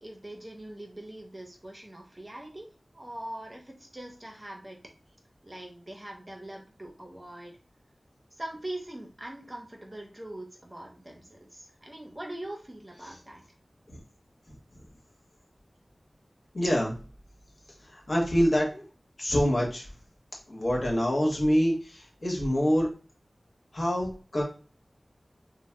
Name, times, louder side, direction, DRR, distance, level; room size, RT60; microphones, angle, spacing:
voice 1, 0.0-2.7 2.9-4.8 5.4-7.5 8.3-13.4, right 1 dB, 30° right, 1 dB, 0.7 m, -42 dB
voice 2, 16.5-16.9 17.9-18.8 19.2-19.8 20.5-22.9 23.7-24.4, equal, 65° left, -1 dB, 1.1 m, -26 dB
2.7 x 2.1 x 3.3 m, 0.37 s
wide cardioid pair, 50°, 0 cm